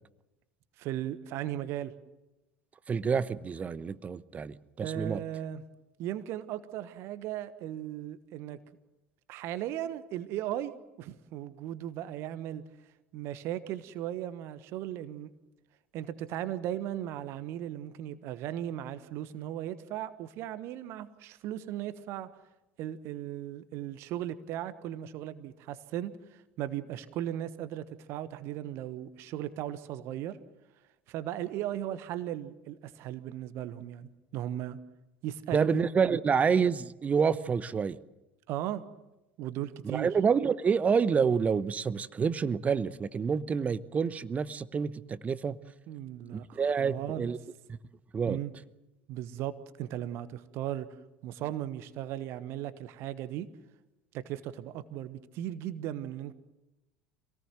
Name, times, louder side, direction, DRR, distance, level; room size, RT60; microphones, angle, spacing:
voice 1, 0.8-1.9 4.8-5.6 6.0-8.6 9.3-12.6 13.1-15.3 15.9-22.3 22.8-30.4 31.1-34.8 35.2-35.8 36.1-36.2 38.5-38.8 39.4-40.1 45.9-47.3 48.3-48.5 49.1-50.9 51.2-53.5 54.1-56.3, right 12 dB, 50° right, 1.2 m, -37 dB
voice 2, 2.9-5.2 35.5-38.0 39.8-45.6 46.3-47.4 48.1-48.4, right 6 dB, 25° right, 0.9 m, -28 dB
26.5 x 18.5 x 7.6 m
figure-of-eight pair, 65°, 6 cm